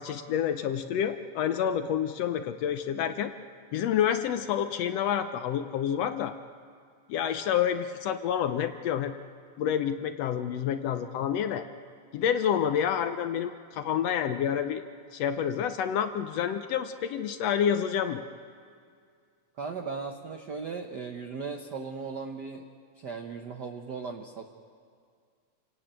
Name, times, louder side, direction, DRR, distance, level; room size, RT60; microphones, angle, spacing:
voice 1, 0.0-3.3 3.7-6.3 7.1-9.1 9.6-11.7 12.1-14.8 15.1-18.2, left 9 dB, 70° left, 9 dB, 1.7 m, -28 dB
voice 2, 19.6-22.6 22.9-24.4, right 5 dB, 70° right, 5 dB, 0.9 m, -37 dB
28.0 x 18.0 x 8.9 m, 2.2 s
omnidirectional pair, 3.4 m